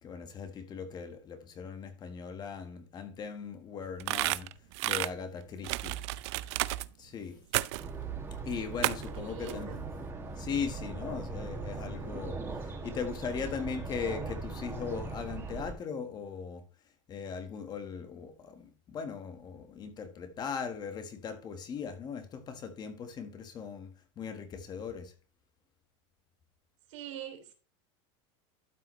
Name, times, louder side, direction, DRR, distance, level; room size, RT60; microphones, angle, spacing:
voice 1, 0.0-4.5 4.8-6.0 7.0-7.4 8.4-9.8 10.4-16.6 17.1-25.1, left 6 dB, 25° left, 1.5 m, -39 dB
sound 1, 4.0-5.1 5.6-6.9 7.5-7.9 8.8-9.1 9.5-9.6, right 19 dB, 65° right, 0.5 m, -31 dB
sound 2, 7.8-15.7, right 3 dB, 15° right, 2.2 m, -39 dB
voice 2, 9.1-9.9 26.9-27.5, right 7 dB, 90° right, 3.1 m, -44 dB
12.5 x 5.8 x 3.2 m
supercardioid pair, 145°, 15 cm